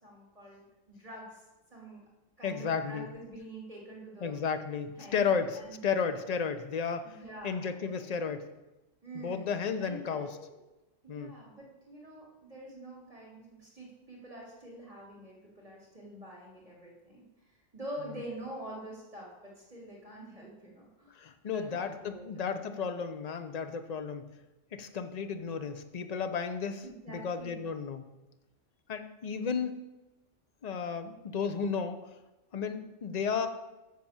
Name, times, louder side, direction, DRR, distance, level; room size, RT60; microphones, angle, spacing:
voice 1, 0.0-1.4 1.7-2.0 2.4-4.4 4.9-5.8 7.0-8.1 9.0-9.5 9.8-10.6 11.0-22.4 26.8-27.7, right 1 dB, 30° right, -4 dB, 2.7 m, -46 dB
voice 2, 2.4-3.1 4.2-7.2 7.4-8.5 9.1-10.3 11.1-11.4 21.2-24.3 24.7-28.1 28.9-29.9 30.6-32.0 32.5-33.5, left 6 dB, 40° left, 8 dB, 0.7 m, -33 dB
7.6 x 6.8 x 7.2 m, 1.0 s
omnidirectional pair, 1.3 m